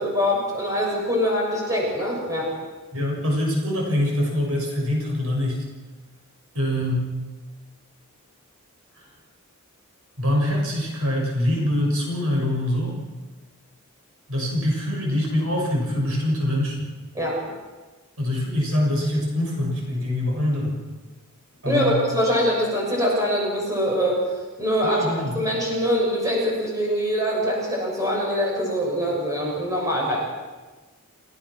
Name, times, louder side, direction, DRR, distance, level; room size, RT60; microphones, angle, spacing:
voice 1, 0.0-2.5 17.1-17.4 21.7-24.2 24.6-30.2, equal, 15° right, -2 dB, 7.2 m, -23 dB
voice 2, 2.9-5.6 6.5-7.1 10.2-13.0 14.3-16.8 18.2-20.8 21.6-22.0 24.8-25.4, left 1 dB, 70° right, -1 dB, 6.6 m, -24 dB
29.0 x 18.0 x 6.2 m, 1.3 s
head